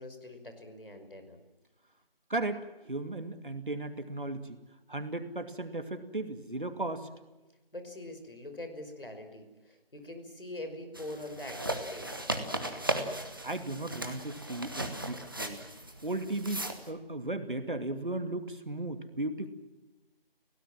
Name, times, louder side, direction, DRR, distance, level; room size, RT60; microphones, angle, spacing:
voice 1, 0.0-1.4 7.7-12.3, left 1 dB, 65° left, 6 dB, 5.7 m, -43 dB
voice 2, 2.3-4.6 4.9-7.1 13.4-15.7 16.0-19.5, right 2 dB, 60° right, 8 dB, 2.6 m, -36 dB
sound 1, 11.0-16.9, right 1 dB, 20° right, 1.5 m, -37 dB
29.0 x 17.5 x 7.6 m, 1.1 s
figure-of-eight pair, 175°, 30 cm